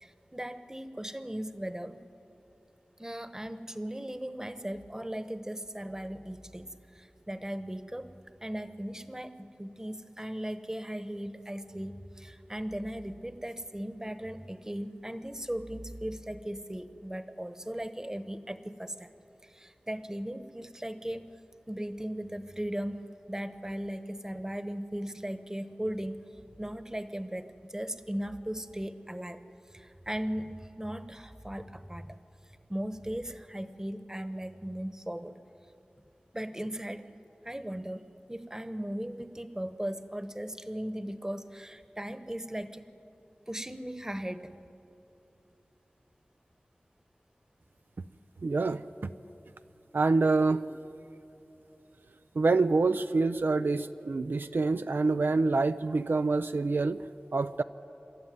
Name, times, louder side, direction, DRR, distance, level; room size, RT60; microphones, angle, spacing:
voice 1, 0.0-2.0 3.0-8.1 8.4-19.1 19.4-21.3 21.7-26.2 26.6-29.4 29.7-32.2 32.7-35.3 36.3-37.0 37.4-42.9 43.5-44.5, equal, 15° right, 11 dB, 1.1 m, -37 dB
voice 2, 48.4-48.8 49.9-50.6 52.4-57.0 57.3-57.6, right 3 dB, 80° right, 10 dB, 0.5 m, -26 dB
27.0 x 13.0 x 9.4 m, 3.0 s
wide cardioid pair, 55°, 4 cm